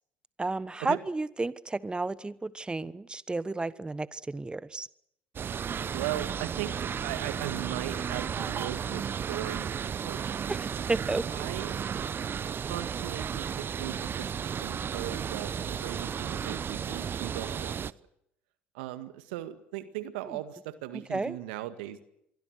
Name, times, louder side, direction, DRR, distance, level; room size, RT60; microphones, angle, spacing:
voice 1, 0.4-4.9 10.5-11.2 21.1-21.4, right 3 dB, 15° right, 18 dB, 1.1 m, -32 dB
sound 1, 5.4-17.9, right 7 dB, 40° right, 0.9 m, -34 dB
voice 2, 5.9-10.2 11.3-11.8 12.5-17.9 18.7-22.1, right 14 dB, 80° right, 12 dB, 1.9 m, -38 dB
27.5 x 23.5 x 6.3 m, 0.75 s
hypercardioid pair, 60°, 6 cm